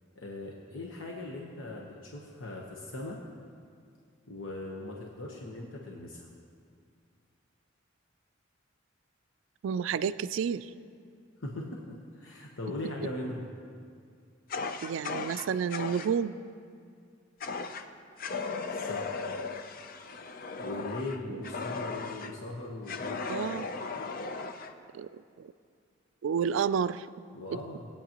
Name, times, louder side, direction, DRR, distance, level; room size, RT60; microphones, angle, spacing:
voice 1, 0.1-3.2 4.3-6.3 11.4-13.5 18.7-19.3 20.6-23.3 27.3-27.9, left 2 dB, 85° left, -1 dB, 1.0 m, -39 dB
voice 2, 9.6-10.7 14.8-16.3 21.3-21.4 23.3-23.7 24.9-25.5 26.2-27.1 27.5-27.6, right 7 dB, 80° right, 14 dB, 0.3 m, -30 dB
Fire, 14.5-16.1 17.4-17.9 18.2-22.3 22.9-24.7, left 4 dB, 50° left, 0.5 m, -37 dB
19.5 x 8.8 x 2.9 m, 2.3 s
head